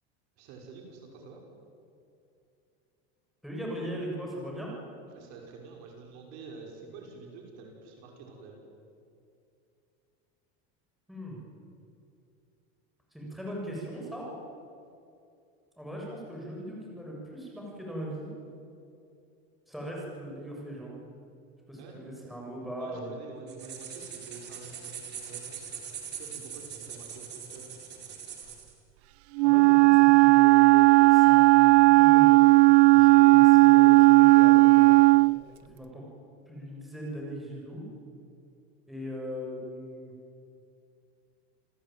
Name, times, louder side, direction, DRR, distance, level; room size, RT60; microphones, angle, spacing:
voice 1, 0.4-1.5 5.1-8.6 21.8-22.0 22.8-25.7 26.2-27.8, right 4 dB, 55° right, 1 dB, 5.8 m, -48 dB
voice 2, 3.4-4.7 11.1-11.4 13.1-14.3 15.8-18.3 19.7-21.0 21.7-23.1 29.4-32.4 32.9-35.0 35.7-36.0 36.5-37.8 38.9-40.1, equal, ahead, -3 dB, 7.1 m, -39 dB
sound 1, 23.5-28.7, right 7 dB, 35° right, 4.3 m, -42 dB
Wind instrument woodwind instrument, 29.4-35.4, right 27 dB, 85° right, 0.5 m, -16 dB
28.5 x 19.0 x 9.3 m, 2.6 s
cardioid pair, 155°, 32 cm